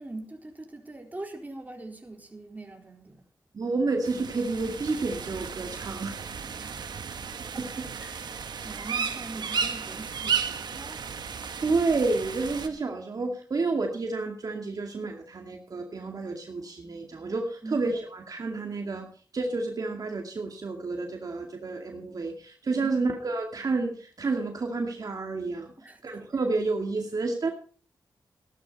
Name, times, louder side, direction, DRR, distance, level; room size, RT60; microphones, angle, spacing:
voice 1, 0.0-3.2 3.6-3.8 6.6-7.3 8.0-11.0 17.6-18.0 22.8-23.1 25.8-26.2, right 2 dB, 20° right, 4.2 m, -43 dB
voice 2, 3.5-6.2 7.6-7.7 11.6-19.1 19.3-25.7 26.0-27.5, right 3 dB, 55° right, 2.2 m, -30 dB
sound 1, 4.0-12.7, right 6 dB, 75° right, 1.5 m, -34 dB
15.5 x 12.0 x 4.1 m
cardioid pair, 60°, 7 cm